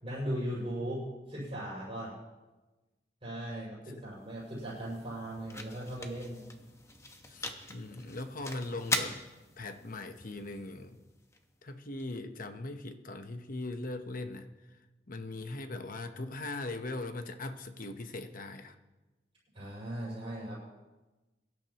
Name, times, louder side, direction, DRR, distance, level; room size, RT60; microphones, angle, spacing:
voice 1, 0.0-2.2 3.2-6.5 19.5-20.6, right 1 dB, 30° right, -9 dB, 6.2 m, -38 dB
sound 1, 3.9-12.0, left 2 dB, 15° left, 1.1 m, -41 dB
voice 2, 7.3-9.2 9.6-11.0 11.6-14.5 15.1-18.8, left 2 dB, 50° left, 7 dB, 1.0 m, -40 dB
23.5 x 12.0 x 3.0 m, 1.1 s
head